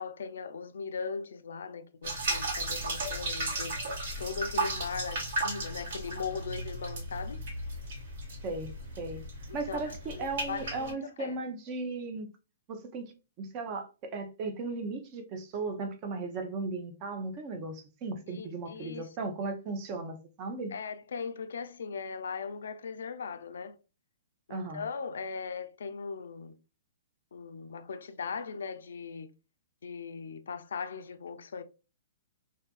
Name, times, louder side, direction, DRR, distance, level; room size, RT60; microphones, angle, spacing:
voice 1, 0.0-3.8 4.2-7.4 9.5-11.4 18.3-19.1 20.7-23.8 24.5-26.5 27.3-29.3 29.8-31.6, left 5 dB, 80° left, 0.3 m, -39 dB
sound 1, 2.0-10.9, right 2 dB, 65° right, 1.1 m, -35 dB
voice 2, 8.4-9.2 9.5-12.3 12.7-13.1 13.4-20.7 24.5-24.8, right 3 dB, 35° right, 0.5 m, -36 dB
2.6 x 2.4 x 2.3 m
hypercardioid pair, 145°, 0 cm